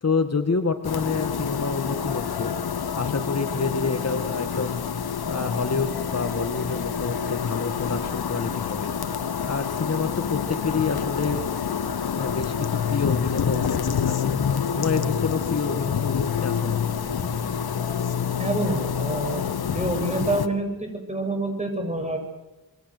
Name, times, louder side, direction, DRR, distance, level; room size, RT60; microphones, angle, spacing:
voice 1, 0.0-2.5 2.9-4.8 5.3-8.9 9.4-11.4 12.2-14.3 14.7-16.8, left 4 dB, 45° left, 7 dB, 1.9 m, -28 dB
sound 1, 0.8-20.5, left 7 dB, 85° left, 1.4 m, -27 dB
voice 2, 18.4-19.4 19.7-22.2, right 2 dB, 20° right, 4 dB, 7.8 m, -27 dB
27.5 x 23.0 x 8.0 m, 1.1 s
wide cardioid pair, 75°, 36 cm